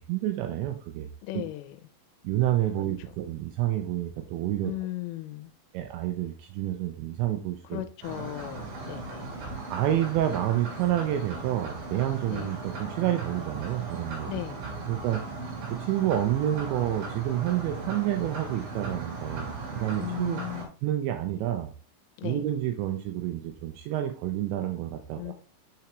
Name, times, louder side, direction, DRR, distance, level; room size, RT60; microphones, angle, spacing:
voice 1, 0.1-1.1 2.2-4.7 5.7-7.8 9.7-14.3 14.9-15.2 15.8-20.4 20.8-21.7 22.2-25.3, right 12 dB, 85° right, 5 dB, 2.6 m, -29 dB
voice 2, 1.2-1.8 4.6-5.5 7.7-9.3 12.3-12.5 14.3-14.6 20.0-20.7 22.2-22.4 25.1-25.3, left 16 dB, 85° left, 9 dB, 3.1 m, -36 dB
sound 1, 8.0-20.6, right 3 dB, 55° right, 3.3 m, -37 dB
7.0 x 5.8 x 3.0 m, 0.37 s
omnidirectional pair, 5.7 m